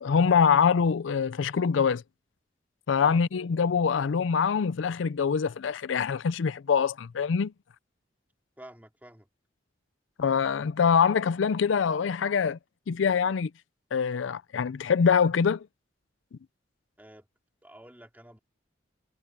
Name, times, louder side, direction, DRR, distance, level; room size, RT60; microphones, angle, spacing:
voice 1, 0.0-2.0 2.9-7.5 10.2-12.6 12.9-13.5 13.9-15.7, left 6 dB, 85° left, 0.4 m, -24 dB
voice 2, 8.6-9.3 17.0-17.3 17.6-18.4, right 1 dB, 10° right, 3.3 m, -50 dB
head